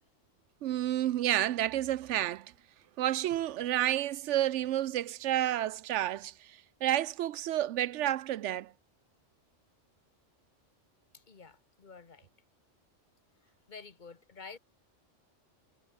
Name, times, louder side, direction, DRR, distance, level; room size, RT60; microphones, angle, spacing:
voice 1, 0.6-2.5 3.0-8.7, right 13 dB, 75° right, 0.9 m, -30 dB
voice 2, 11.1-12.3 13.7-14.6, left 5 dB, 40° left, 1.3 m, -50 dB
omnidirectional pair, 1.3 m